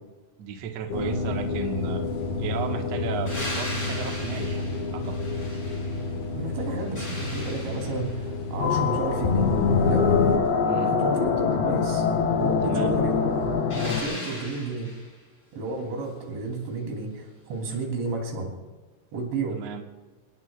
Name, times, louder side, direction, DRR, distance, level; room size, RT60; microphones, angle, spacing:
voice 1, 0.4-2.0 2.4-4.6 4.9-5.2 10.6-10.9 12.6-12.9 19.5-19.8, right 6 dB, 60° right, 2 dB, 1.8 m, -34 dB
sound 1, 0.9-10.4, left 4 dB, 65° left, 3.5 m, -28 dB
sound 2, 3.3-6.2 6.6-8.3 13.7-15.1 17.7-17.8, left 1 dB, 20° left, 6.4 m, -38 dB
voice 2, 6.3-9.5 9.8-10.2 10.8-12.1 12.4-13.4 13.7-14.9 15.5-18.5 19.1-19.6, right 3 dB, 85° right, 1 dB, 5.6 m, -32 dB
sound 3, 8.6-14.0, left 5 dB, 80° left, 3.9 m, -25 dB
28.5 x 18.0 x 2.4 m, 1.3 s
omnidirectional pair, 5.1 m